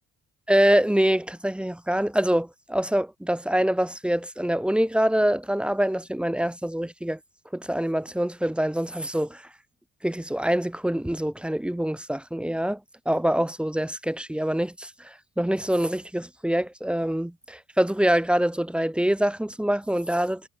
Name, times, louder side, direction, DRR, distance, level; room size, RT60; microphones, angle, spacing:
voice 1, 0.5-7.2 7.5-9.4 10.0-12.8 13.1-20.4, right 1 dB, 5° right, 0.5 m, -25 dB
cardioid pair, 90°, 30 cm